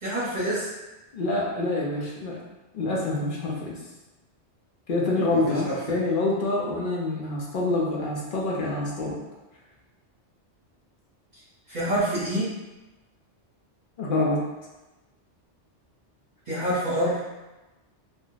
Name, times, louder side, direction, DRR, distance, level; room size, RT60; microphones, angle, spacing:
voice 1, 0.0-0.7 5.3-5.8 11.7-12.5 16.5-17.2, right 1 dB, 40° right, -11 dB, 1.0 m, -27 dB
voice 2, 1.1-2.4 2.7-3.8 4.9-9.2 14.0-14.4, left 2 dB, 55° left, -3 dB, 0.6 m, -26 dB
2.5 x 2.1 x 3.8 m, 1.1 s
omnidirectional pair, 1.2 m